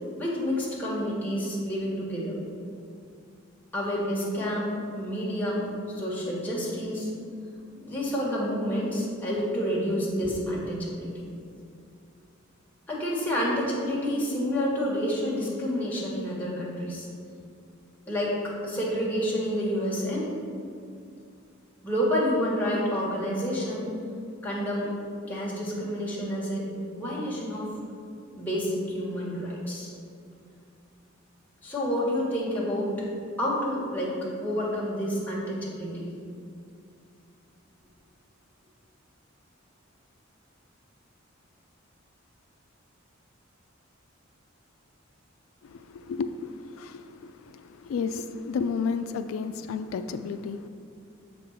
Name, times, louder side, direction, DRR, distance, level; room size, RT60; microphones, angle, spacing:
voice 1, 0.2-2.4 3.7-7.1 7.8-11.1 12.9-17.1 18.1-20.3 21.8-23.9 24.4-24.9 25.3-26.7 26.9-27.7 28.4-29.9 31.6-33.0 33.4-36.1, equal, 10° left, -6 dB, 1.7 m, -29 dB
voice 2, 45.6-50.7, left 5 dB, 85° left, 9 dB, 0.3 m, -32 dB
7.2 x 3.8 x 5.7 m, 2.5 s
head